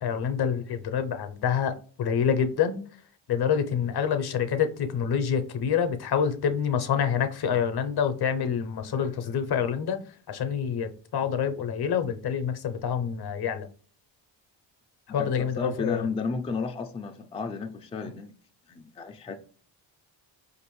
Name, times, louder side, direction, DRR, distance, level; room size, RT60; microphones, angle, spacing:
voice 1, 0.0-2.8 3.3-10.0 10.3-13.7 15.1-16.1, left 7 dB, 55° left, 0.6 m, -27 dB
voice 2, 15.1-18.3 18.7-19.4, left 4 dB, 15° left, 0.3 m, -33 dB
4.7 x 2.6 x 3.0 m
cardioid pair, 85°, 47 cm